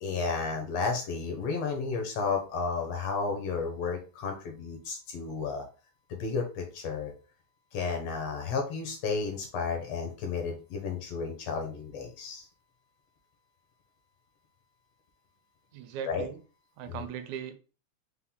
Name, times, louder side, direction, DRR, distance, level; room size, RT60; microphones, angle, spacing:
voice 1, 0.0-5.6 6.1-7.1 7.7-12.5 16.0-16.3 16.9-17.1, left 4 dB, 70° left, 3 dB, 1.7 m, -32 dB
voice 2, 15.7-16.4 16.8-17.5, right 8 dB, 80° right, 9 dB, 1.8 m, -38 dB
5.9 x 2.1 x 3.5 m, 0.36 s
omnidirectional pair, 3.4 m